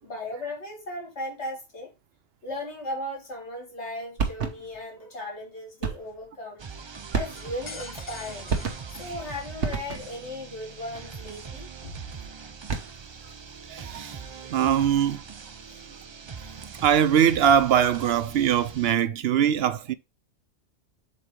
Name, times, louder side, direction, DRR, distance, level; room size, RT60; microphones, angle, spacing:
voice 1, 0.0-1.9 2.4-6.6 7.1-8.5 8.9-12.1 15.7-15.8, left 1 dB, 85° left, 2.6 m, -37 dB
sound 1, 4.2-4.8 5.8-6.2 7.1-7.7 8.5-9.1 9.6-10.3 12.5-13.1, right 5 dB, 85° right, 1.4 m, -30 dB
sound 2, 6.6-19.0, right 5 dB, 40° right, 0.4 m, -42 dB
sound 3, 7.4-9.9, left 4 dB, 35° left, 0.5 m, -45 dB
voice 2, 13.7-14.3 14.5-15.2 16.8-19.9, right 9 dB, 65° right, 0.8 m, -22 dB
7.6 x 4.3 x 3.2 m
omnidirectional pair, 1.1 m